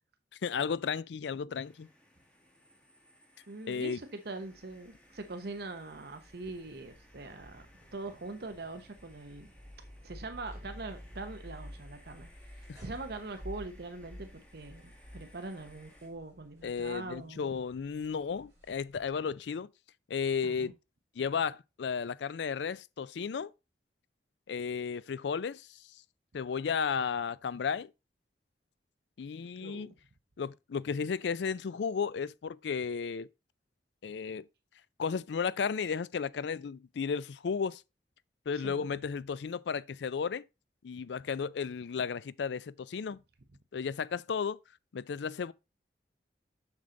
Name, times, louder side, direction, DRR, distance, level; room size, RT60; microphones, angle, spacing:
voice 1, 0.4-1.9 3.7-4.0 12.7-12.8 16.6-19.7 20.1-20.8 21.2-23.5 24.5-25.8 26.3-27.9 29.2-29.9 30.4-33.3 34.0-34.5 35.0-37.8 38.5-40.4 40.8-43.2 43.7-44.6 44.9-45.5, left 6 dB, 75° left, 0.4 m, -34 dB
sound 1, 1.6-16.1, equal, 5° left, 1.6 m, -62 dB
voice 2, 3.5-7.6 7.9-9.5 10.0-17.6 20.4-20.7 29.6-29.9 38.5-38.9, right 3 dB, 60° right, 0.9 m, -43 dB
sound 2, 4.3-19.1, equal, 15° right, 4.8 m, -52 dB
7.1 x 6.5 x 3.8 m
head